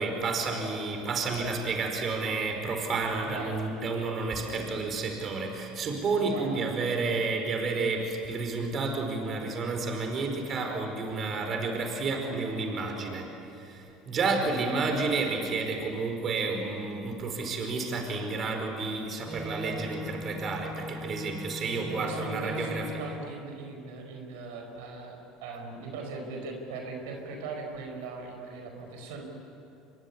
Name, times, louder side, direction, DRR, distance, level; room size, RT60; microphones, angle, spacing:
voice 1, 0.0-22.9, right 3 dB, 40° right, 3 dB, 4.9 m, -31 dB
voice 2, 6.3-6.7 14.3-14.5 20.9-21.1 21.7-29.2, right 3 dB, 80° right, 3 dB, 5.1 m, -39 dB
sound 1, 19.3-23.2, left 2 dB, 20° right, 4.8 m, -40 dB
25.5 x 22.5 x 10.0 m, 2.8 s
supercardioid pair, 100°, 0 cm